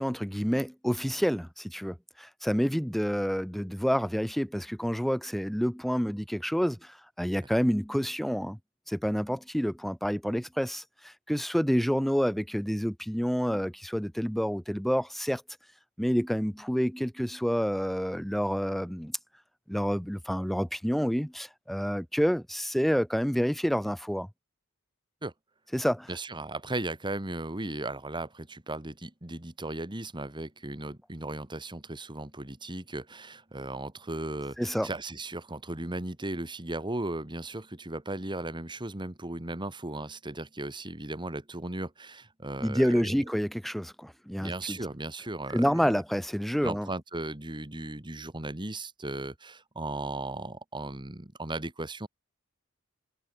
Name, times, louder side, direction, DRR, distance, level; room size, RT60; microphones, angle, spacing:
voice 1, 0.0-8.6 8.9-15.4 16.0-19.2 19.7-24.3 25.7-26.1 34.6-34.9 42.6-44.8 45.5-46.9, equal, ahead, 0.9 m, -28 dB
voice 2, 26.1-43.2 44.4-46.0 46.6-52.1, right 2 dB, 20° right, 2.0 m, -36 dB
head